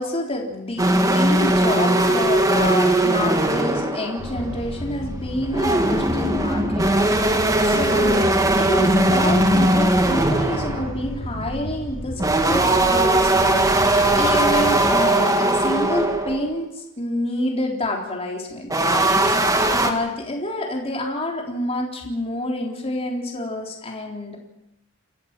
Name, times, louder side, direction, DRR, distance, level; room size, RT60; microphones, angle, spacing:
voice 1, 0.0-8.3 8.6-24.4, left 1 dB, 30° left, 0 dB, 3.8 m, -28 dB
sound 1, 0.8-4.6 5.3-10.9 12.2-16.5 18.7-19.9, right 1 dB, 20° right, 2.2 m, -19 dB
sound 2, 4.2-14.9, equal, 85° left, 7.7 m, -32 dB
29.0 x 14.5 x 7.6 m, 0.82 s
head